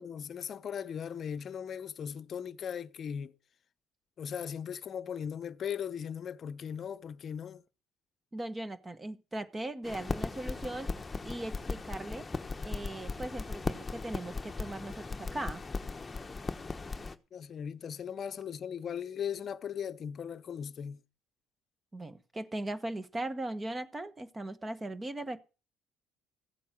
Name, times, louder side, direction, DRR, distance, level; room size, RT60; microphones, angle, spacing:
voice 1, 0.0-3.3 4.2-7.6 17.3-21.0, left 8 dB, 50° left, 0.8 m, -38 dB
voice 2, 8.3-10.9 11.2-12.3 12.6-15.6 21.9-25.4, right 1 dB, 20° right, 1.3 m, -39 dB
sound 1, 9.8-17.2, left 3 dB, 20° left, 1.1 m, -38 dB
15.0 x 8.4 x 6.5 m
supercardioid pair, 85°, 0 cm